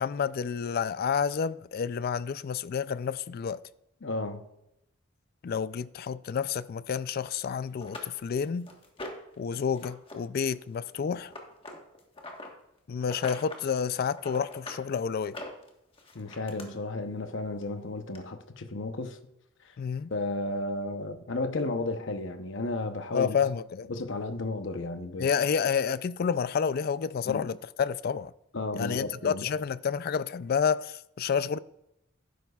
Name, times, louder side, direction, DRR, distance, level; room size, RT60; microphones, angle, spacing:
voice 1, 0.0-3.6 5.4-8.7 9.4-11.3 12.9-15.4 19.8-20.1 23.1-23.9 25.2-28.3 28.7-31.6, left 6 dB, 50° left, 0.3 m, -29 dB
voice 2, 4.0-4.5 16.1-19.2 20.1-23.4 23.9-25.3 27.2-27.5 28.5-29.4, left 2 dB, 65° left, 0.8 m, -33 dB
sound 1, 7.3-7.4 7.8-9.4 9.7-10.2 10.4-12.5 13.0-13.6 14.0-14.8 15.2-16.7 17.6-17.7 18.2-18.3, left 2 dB, 25° left, 1.3 m, -43 dB
12.0 x 10.0 x 2.4 m
head